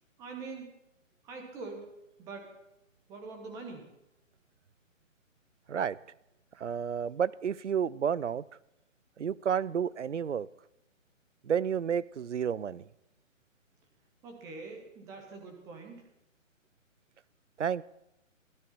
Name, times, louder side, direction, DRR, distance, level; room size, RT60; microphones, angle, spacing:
voice 1, 0.2-0.7 1.2-1.9 2.2-2.5 3.1-3.9 14.2-16.0, right 4 dB, 10° right, 3 dB, 1.1 m, -44 dB
voice 2, 6.6-8.4 9.2-10.5 11.4-12.8 17.6-17.8, right 8 dB, 60° right, 21 dB, 0.5 m, -31 dB
17.0 x 13.0 x 4.2 m, 0.86 s
figure-of-eight pair, 140°, 40 cm